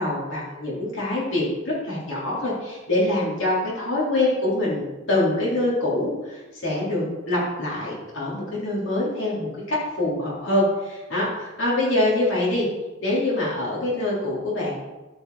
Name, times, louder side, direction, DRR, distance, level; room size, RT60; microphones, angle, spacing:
voice 1, 0.0-12.7 13.0-14.8, left 1 dB, 65° left, -6 dB, 3.5 m, -25 dB
12.5 x 5.7 x 4.1 m, 1.1 s
head